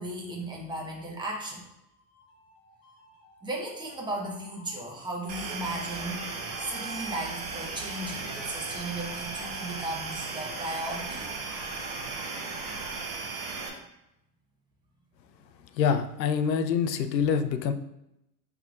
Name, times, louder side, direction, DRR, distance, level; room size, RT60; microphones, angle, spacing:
voice 1, 0.0-1.6 3.4-6.3 6.6-11.3, right 1 dB, 10° right, -1 dB, 0.9 m, -36 dB
sound 1, 1.6-13.2, left 1 dB, 30° left, 1.4 m, -52 dB
sound 2, 5.3-13.7, right 4 dB, 40° right, 1.0 m, -36 dB
voice 2, 15.7-17.7, left 7 dB, 85° left, 9 dB, 0.6 m, -25 dB
5.5 x 3.5 x 2.4 m, 0.85 s
hypercardioid pair, 110°, 49 cm